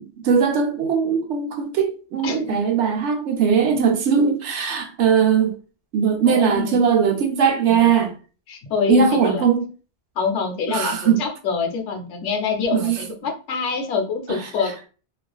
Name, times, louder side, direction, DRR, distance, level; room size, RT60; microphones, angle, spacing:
voice 1, 0.0-5.6 5.9-8.1 8.9-9.6 10.7-11.2 12.7-13.0 14.3-14.5, right 6 dB, 80° right, 0.9 m, -20 dB
voice 2, 2.2-2.6 6.3-6.8 7.7-7.9 8.5-9.4 10.2-14.9, left 5 dB, 90° left, 0.9 m, -26 dB
2.4 x 2.4 x 2.2 m
omnidirectional pair, 1.2 m